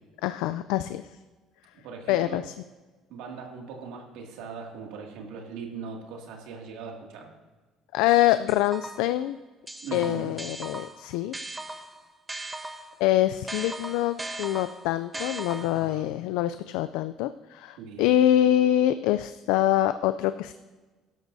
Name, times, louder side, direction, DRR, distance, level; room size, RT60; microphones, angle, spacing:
voice 1, 0.2-1.0 2.1-2.4 7.9-9.4 9.9-11.3 13.0-20.5, left 12 dB, 85° left, 12 dB, 0.3 m, -25 dB
voice 2, 1.7-2.4 3.1-7.3 9.8-10.3 15.6-16.2 17.8-18.2, right 5 dB, 80° right, 1 dB, 2.2 m, -40 dB
sound 1, 8.5-9.2 9.7-13.0 13.5-15.9, right 2 dB, 10° right, 1.0 m, -38 dB
17.0 x 12.0 x 2.7 m, 1.3 s
cardioid pair, 105°, 0 cm